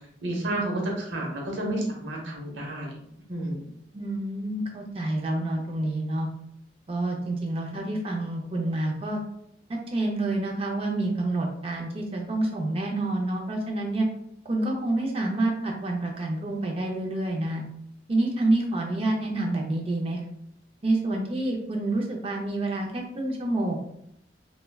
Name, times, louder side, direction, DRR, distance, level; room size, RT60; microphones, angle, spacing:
voice 1, 0.2-3.0 3.3-3.6, right 1 dB, 85° right, -1 dB, 0.8 m, -30 dB
voice 2, 3.9-6.3 6.9-9.2 9.7-14.1 14.4-17.6 18.1-20.2 20.8-23.8, right 2 dB, 30° right, 0 dB, 0.5 m, -28 dB
3.4 x 2.2 x 2.2 m, 0.74 s
head